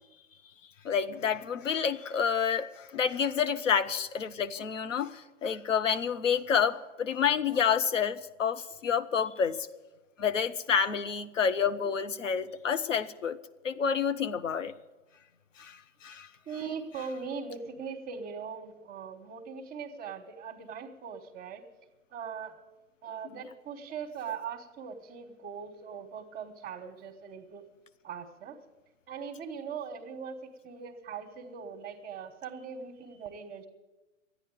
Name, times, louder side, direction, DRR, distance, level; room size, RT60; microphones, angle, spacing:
voice 1, 0.8-9.6 10.2-13.4 13.6-14.7 15.6-16.3 23.3-23.4, left 7 dB, 75° left, 11 dB, 0.9 m, -29 dB
voice 2, 16.5-21.6 22.1-22.6 23.0-27.6 28.0-28.6 29.1-33.7, right 6 dB, 25° right, 0 dB, 1.2 m, -40 dB
13.5 x 9.8 x 9.0 m, 1.1 s
figure-of-eight pair, 110°, 38 cm